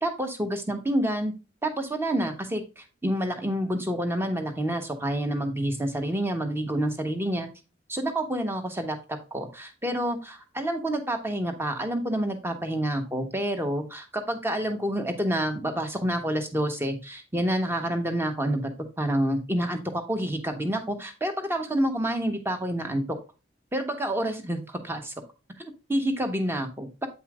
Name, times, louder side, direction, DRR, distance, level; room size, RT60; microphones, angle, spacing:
voice 1, 0.0-1.3 1.6-7.5 7.9-23.2 23.7-25.1 25.6-27.1, right 1 dB, 15° right, 6 dB, 1.2 m, -28 dB
8.6 x 5.5 x 2.5 m, 0.30 s
head